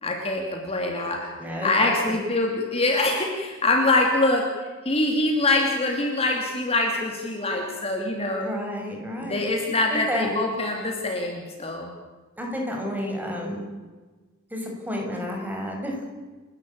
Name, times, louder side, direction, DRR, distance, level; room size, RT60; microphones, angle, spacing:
voice 1, 0.0-1.3 1.6-4.5 4.8-8.5 9.2-11.9, left 2 dB, 30° left, 1 dB, 2.9 m, -24 dB
voice 2, 1.4-2.2 8.4-9.4 9.9-10.3 12.4-13.6 14.5-16.1, equal, 10° right, 1 dB, 5.8 m, -31 dB
29.5 x 12.5 x 8.7 m, 1.3 s
head